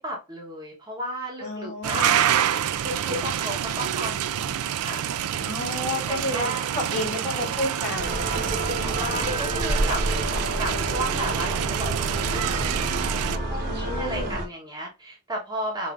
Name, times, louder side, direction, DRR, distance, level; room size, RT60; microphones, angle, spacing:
voice 1, 0.0-2.1 2.8-5.1 6.1-6.7 7.2-8.1 8.9-10.0 10.6-15.9, right 1 dB, 20° right, -3 dB, 1.1 m, -34 dB
voice 2, 1.4-2.1 5.4-6.5 6.7-8.3 13.6-14.3, left 1 dB, 30° left, -3 dB, 1.8 m, -31 dB
sound 1, 1.8-13.4, right 10 dB, 75° right, 0.4 m, -27 dB
sound 2, 8.0-14.5, right 1 dB, 45° right, 1.2 m, -29 dB
5.2 x 2.7 x 2.4 m, 0.27 s
head